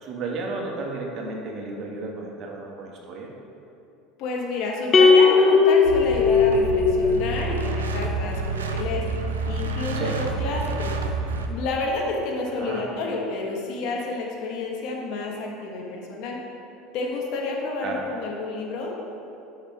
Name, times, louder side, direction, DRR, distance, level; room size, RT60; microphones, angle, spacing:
voice 1, 0.0-3.3 9.9-10.2 12.6-12.9 17.8-18.0, right 3 dB, 50° right, 0 dB, 1.4 m, -33 dB
voice 2, 4.2-9.0 9.4-10.9 11.5-16.4 16.9-18.9, left 3 dB, 60° left, -1 dB, 1.4 m, -29 dB
sound 1, 4.9-7.4, left 4 dB, 35° left, 0.7 m, -17 dB
sound 2, 5.8-11.5, right 3 dB, 90° right, 0.5 m, -28 dB
7.3 x 5.8 x 4.7 m, 2.7 s
hypercardioid pair, 80°, 0 cm